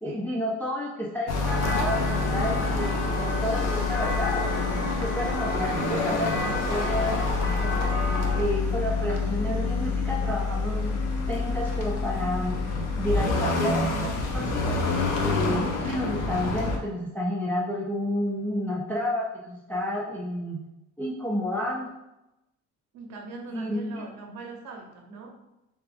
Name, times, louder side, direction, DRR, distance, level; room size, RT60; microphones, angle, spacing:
voice 1, 0.0-2.9 3.2-4.7 5.0-7.9 8.3-10.8 11.3-12.6 13.0-14.8 15.2-20.6 21.0-21.9 23.5-23.8, left 1 dB, 5° left, -4 dB, 0.3 m, -30 dB
sound 1, 1.3-16.8, left 3 dB, 55° left, 0.7 m, -27 dB
sound 2, 1.4-8.4, left 1 dB, 75° left, 1.2 m, -31 dB
voice 2, 22.9-25.4, right 3 dB, 55° right, 2 dB, 0.8 m, -41 dB
3.5 x 3.3 x 3.4 m, 0.92 s
cardioid pair, 175°, 32 cm